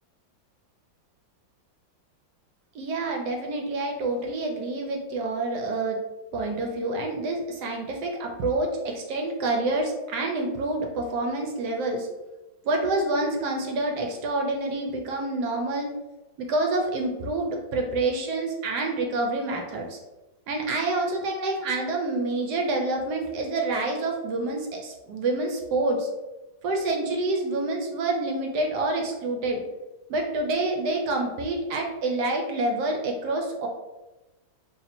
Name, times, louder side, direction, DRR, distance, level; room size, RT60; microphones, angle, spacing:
voice 1, 2.7-6.0 6.3-12.1 12.6-15.9 16.4-20.0 20.5-26.1 26.6-29.6 30.1-33.7, right 2 dB, 70° right, 2 dB, 1.0 m, -27 dB
2.9 x 2.7 x 4.1 m, 1.1 s
omnidirectional pair, 2.1 m